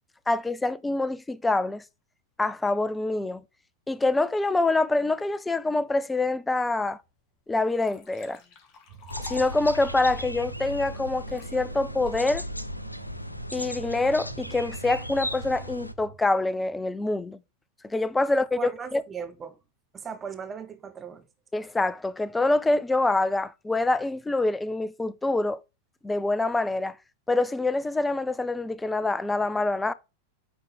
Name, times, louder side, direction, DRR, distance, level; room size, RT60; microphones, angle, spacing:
voice 1, 0.3-1.8 2.4-3.4 3.9-7.0 7.5-8.4 9.2-12.4 13.5-17.4 17.8-19.0 21.5-25.6 26.0-27.0 27.3-29.9, left 2 dB, 10° left, 0.5 m, -25 dB
Liquid, 7.0-7.1 7.5-11.5 12.1-12.5, left 5 dB, 35° left, 2.0 m, -49 dB
sound 1, 8.9-16.2, right 7 dB, 50° right, 1.4 m, -45 dB
sound 2, 9.1-15.9, left 1 dB, 85° left, 0.5 m, -36 dB
voice 2, 18.6-19.6 19.9-21.2, right 6 dB, 20° right, 1.3 m, -37 dB
8.9 x 4.0 x 3.6 m
figure-of-eight pair, 90°, 0 cm